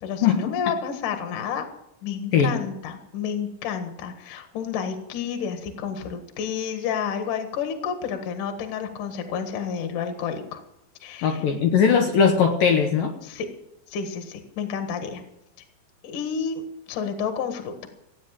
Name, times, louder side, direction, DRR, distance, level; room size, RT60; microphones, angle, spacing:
voice 1, 0.0-1.6 2.0-10.6 11.0-11.4 13.2-13.5 13.9-15.2 16.0-16.6 16.9-17.9, left 7 dB, 60° left, 6 dB, 2.4 m, -30 dB
voice 2, 11.2-13.2, left 6 dB, 75° left, 4 dB, 2.1 m, -19 dB
16.0 x 9.0 x 7.3 m, 0.80 s
omnidirectional pair, 5.4 m